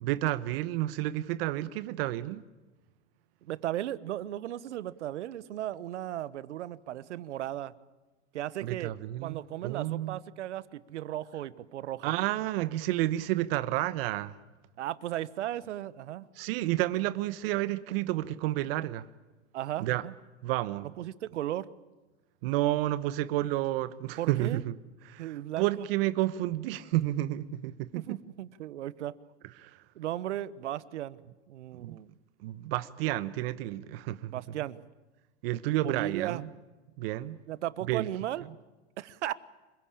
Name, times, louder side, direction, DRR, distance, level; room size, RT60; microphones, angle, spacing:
voice 1, 0.0-2.4 8.6-10.2 12.0-14.3 16.4-19.0 19.8-20.0 20.4-20.9 22.4-24.7 25.1-28.2 29.6-29.7 31.8-32.0 32.4-34.4 35.4-36.5 37.0-37.4 37.9-38.1, right 15 dB, 55° right, 1.1 m, -30 dB
voice 2, 3.4-7.7 8.3-8.9 9.2-12.1 14.8-16.3 19.5-20.1 20.8-21.7 24.2-24.6 25.2-25.9 27.9-29.1 29.9-31.2 31.5-32.1 34.3-34.8 35.8-36.4 37.5-38.4 39.0-39.3, right 13 dB, 80° right, 1.2 m, -36 dB
27.0 x 16.5 x 8.8 m
hypercardioid pair, 125°, 35 cm